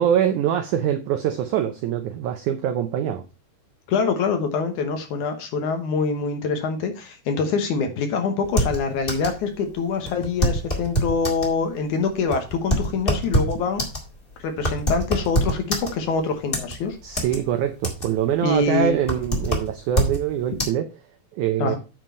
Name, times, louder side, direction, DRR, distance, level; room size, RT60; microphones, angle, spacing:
voice 1, 0.0-3.2 17.0-20.9 21.3-21.8, right 10 dB, 80° right, 1.7 m, -24 dB
voice 2, 3.9-13.8 14.4-17.0 18.4-19.0 21.6-21.8, left 4 dB, 65° left, 2.2 m, -25 dB
sound 1, 8.4-9.4 9.7-9.8 10.1-11.5 12.1-16.2 16.5-17.4 17.7-18.3 18.6-20.2 20.6-20.7, equal, 20° left, 1.4 m, -24 dB
9.2 x 4.6 x 5.4 m
omnidirectional pair, 4.3 m